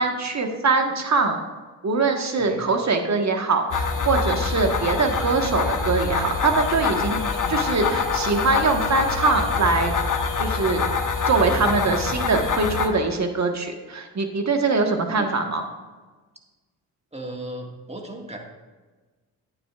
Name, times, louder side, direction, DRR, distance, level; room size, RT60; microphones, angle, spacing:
voice 1, 0.0-1.4 1.8-7.2 7.5-9.9 10.4-10.8 11.3-15.6, right 3 dB, 35° right, 5 dB, 1.5 m, -23 dB
voice 2, 2.4-2.7 11.5-11.9 15.2-15.4 17.1-18.4, right 1 dB, 15° right, 1 dB, 1.9 m, -36 dB
sound 1, 3.7-12.9, left 5 dB, 45° left, 1.2 m, -25 dB
11.0 x 9.1 x 2.5 m, 1.3 s
supercardioid pair, 55°, 46 cm